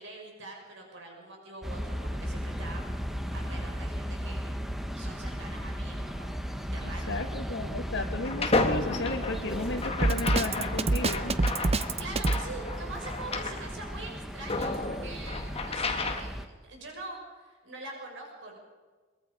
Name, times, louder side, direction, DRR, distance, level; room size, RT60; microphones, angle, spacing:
voice 1, 0.0-2.8 3.3-4.5 4.9-6.3 6.7-7.3 12.0-18.6, right 2 dB, 65° right, 1 dB, 6.0 m, -44 dB
sound 1, 1.6-16.5, equal, ahead, 1.3 m, -36 dB
voice 2, 7.1-11.4, left 2 dB, 60° left, 5 dB, 2.3 m, -34 dB
sound 2, 8.2-13.6 14.1-14.2 14.5-16.2, left 3 dB, 30° left, 1.7 m, -32 dB
Drum kit, 10.0-12.4, right 2 dB, 30° right, 0.7 m, -25 dB
23.0 x 22.5 x 5.3 m, 1.4 s
head